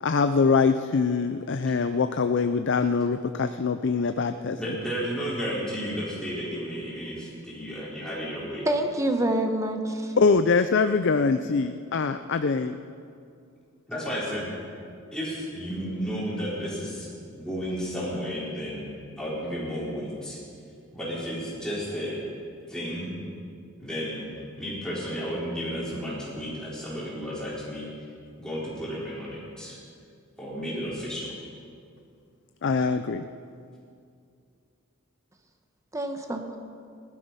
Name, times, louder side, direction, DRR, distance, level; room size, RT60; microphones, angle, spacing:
voice 1, 0.0-4.7 10.2-12.8 32.6-33.2, left 4 dB, 55° left, 9 dB, 0.5 m, -23 dB
voice 2, 4.5-8.7 13.9-14.5 15.1-18.8 19.2-20.4 20.9-22.2 22.7-23.1 23.8-24.2 24.6-27.9 28.4-29.8 30.4-31.3, equal, 5° left, -7 dB, 4.4 m, -32 dB
voice 3, 8.6-10.2 35.9-36.6, right 1 dB, 15° right, 5 dB, 1.1 m, -27 dB
18.5 x 12.0 x 5.6 m, 2.4 s
head